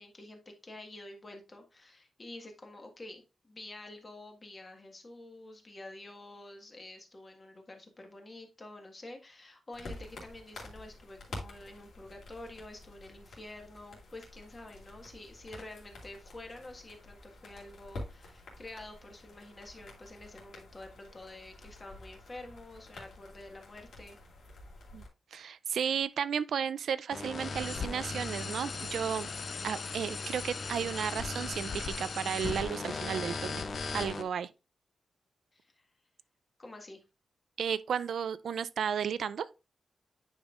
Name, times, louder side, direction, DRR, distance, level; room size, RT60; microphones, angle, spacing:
voice 1, 0.0-24.2 29.6-29.9 35.5-35.8 36.6-37.0, left 2 dB, 25° left, 1.5 m, -48 dB
sound 1, 9.7-25.1, left 2 dB, 80° left, 2.7 m, -49 dB
voice 2, 25.3-29.3 29.6-33.6 33.9-34.5 37.6-39.5, right 7 dB, 85° right, 0.4 m, -33 dB
sound 2, 27.1-34.2, left 4 dB, 50° left, 0.7 m, -37 dB
9.5 x 5.3 x 2.4 m
wide cardioid pair, 145°, 0 cm